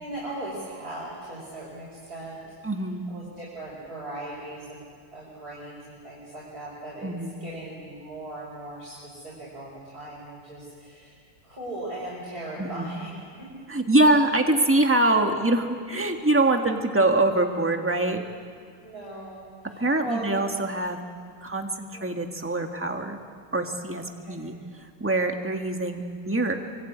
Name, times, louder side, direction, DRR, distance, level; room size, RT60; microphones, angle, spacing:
voice 1, 0.0-2.4 3.1-4.8 5.1-7.1 7.4-11.1 11.4-13.5 15.3-15.6 18.8-20.4 21.9-22.1 24.2-24.4, right 1 dB, 40° right, -7 dB, 6.0 m, -38 dB
voice 2, 2.6-3.0 7.0-7.4 12.6-12.9 13.7-18.2 19.8-21.0 21.4-23.2 23.5-24.5 25.0-26.5, right 2 dB, 5° right, 4 dB, 1.5 m, -24 dB
24.0 x 24.0 x 8.8 m, 2.1 s
omnidirectional pair, 2.4 m